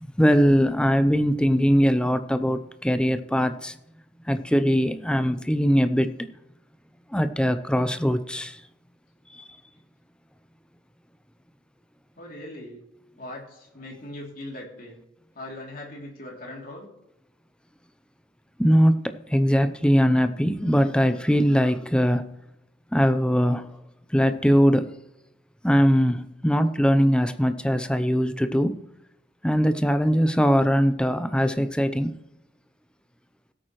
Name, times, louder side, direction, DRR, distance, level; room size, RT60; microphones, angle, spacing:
voice 1, 0.0-3.8 4.2-6.1 7.1-8.6 9.3-9.4 18.6-22.3 22.9-23.7 24.1-24.9 25.6-28.8 29.4-32.1, equal, 5° left, 0.6 m, -21 dB
voice 2, 12.2-12.8 13.2-15.0 15.3-16.9, left 1 dB, 50° left, 3.0 m, -40 dB
16.5 x 8.9 x 3.1 m
head